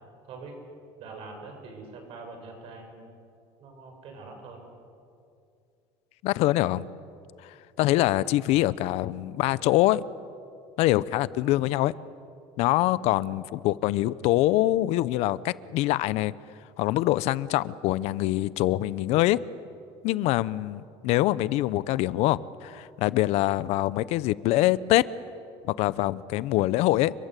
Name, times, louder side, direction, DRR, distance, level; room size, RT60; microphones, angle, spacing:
voice 1, 1.0-3.1 3.6-4.7, right 3 dB, 55° right, 3 dB, 7.4 m, -43 dB
voice 2, 6.2-6.9 7.4-10.0 10.8-11.9 12.6-16.3 16.8-19.4 20.0-25.0 25.6-27.1, left 16 dB, 65° left, 18 dB, 0.8 m, -24 dB
29.5 x 22.5 x 8.4 m, 2.5 s
cardioid pair, 145°, 12 cm